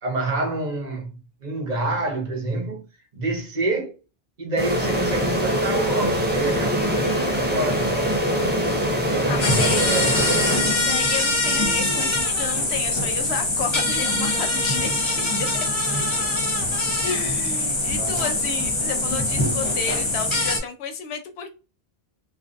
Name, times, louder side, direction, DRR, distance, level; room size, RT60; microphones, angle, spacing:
voice 1, 0.0-1.1 1.4-2.8 3.1-4.0 4.4-8.1 9.1-10.1 18.0-18.2, right 2 dB, 45° right, 0.9 m, -27 dB
sound 1, 4.6-11.2, equal, 15° right, 0.4 m, -23 dB
voice 2, 6.8-8.8 9.3-9.9 10.7-15.5 15.8-15.9 17.0-21.5, left 5 dB, 90° left, 0.9 m, -32 dB
sound 2, 9.4-20.6, left 2 dB, 35° left, 0.6 m, -23 dB
2.5 x 2.0 x 2.4 m
omnidirectional pair, 1.1 m